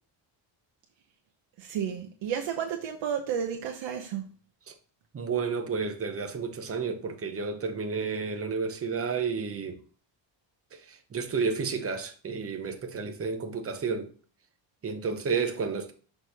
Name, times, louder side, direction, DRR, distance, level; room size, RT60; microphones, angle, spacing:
voice 1, 1.6-4.3, right 8 dB, 65° right, 0.9 m, -32 dB
voice 2, 5.1-9.8 11.1-14.1 14.8-15.9, right 5 dB, 30° right, 0.8 m, -31 dB
6.1 x 3.3 x 5.6 m
cardioid pair, 175°, 48 cm